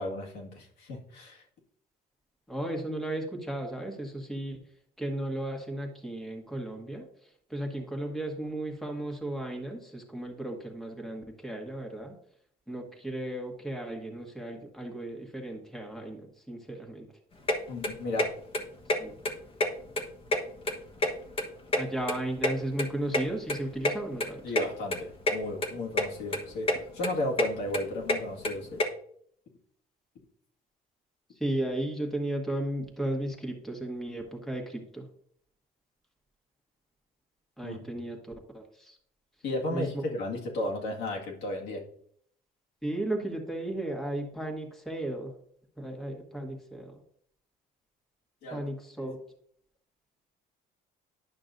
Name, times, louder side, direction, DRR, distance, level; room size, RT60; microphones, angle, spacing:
voice 1, 0.0-1.4 17.7-18.3 24.4-28.8 37.6-37.8 39.4-41.8 48.4-48.7 49.0-49.1, left 1 dB, 75° left, -2 dB, 2.0 m, -34 dB
voice 2, 2.5-4.6 5.0-7.0 7.5-12.1 12.7-17.1 19.0-19.1 21.7-24.4 31.4-35.0 37.6-38.2 38.5-39.0 39.7-40.0 42.8-45.3 45.8-47.0 48.5-49.2, right 1 dB, ahead, 1 dB, 1.5 m, -35 dB
sound 1, 17.5-17.6 17.8-18.3 18.5-18.6 18.9-19.0 19.2-20.0 20.3-21.5 21.7-23.2 23.5-23.6 23.8-23.9 24.2-24.3 24.6-24.7 24.9-25.4 25.6-26.0 26.3-26.8 27.0-28.8, left 1 dB, 35° left, 1.2 m, -27 dB
10.5 x 5.9 x 2.6 m, 0.64 s
cardioid pair, 110°, 17 cm